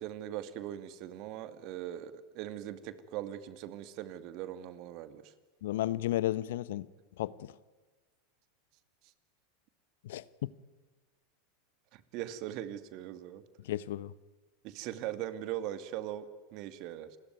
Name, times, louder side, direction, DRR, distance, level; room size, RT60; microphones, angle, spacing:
voice 1, 0.0-5.3 11.9-13.4 14.6-17.2, right 12 dB, 50° right, 2.4 m, -40 dB
voice 2, 5.6-6.9 7.2-7.6 10.0-10.5 13.6-14.1, left 14 dB, 70° left, 0.9 m, -33 dB
29.5 x 21.5 x 9.5 m
hypercardioid pair, 90°, 0 cm